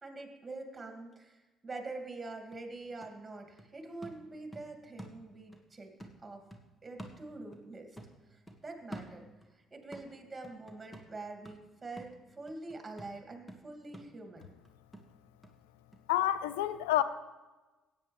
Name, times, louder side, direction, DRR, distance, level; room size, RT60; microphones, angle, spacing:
voice 1, 0.0-5.9 6.2-6.4 6.8-8.0 8.3-9.2 9.5-14.5, right 3 dB, 25° right, 4 dB, 2.6 m, -45 dB
sound 1, 2.1-2.2 2.5-5.7 6.0-7.7 8.0-9.6 9.9-15.6 15.9-16.0, right 1 dB, 15° left, 1.8 m, -50 dB
voice 2, 16.1-17.0, left 13 dB, 85° left, 14 dB, 0.5 m, -28 dB
16.5 x 8.9 x 3.5 m, 1.2 s
hypercardioid pair, 55°, 0 cm